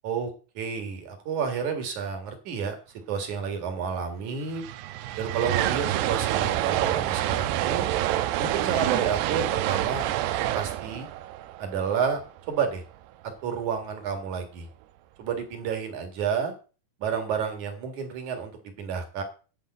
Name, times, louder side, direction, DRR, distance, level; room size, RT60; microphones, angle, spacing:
voice 1, 0.0-2.8 3.1-4.6 5.2-7.9 8.4-10.1 10.5-11.1 11.6-12.2 12.5-12.8 13.4-14.7 15.2-16.5 17.0-18.5 18.8-19.2, right 6 dB, 55° right, 6 dB, 2.8 m, -30 dB
sound 1, 4.0-4.1 4.3-12.5, right 13 dB, 85° right, 2.7 m, -27 dB
11.0 x 5.3 x 7.7 m, 0.35 s
omnidirectional pair, 4.8 m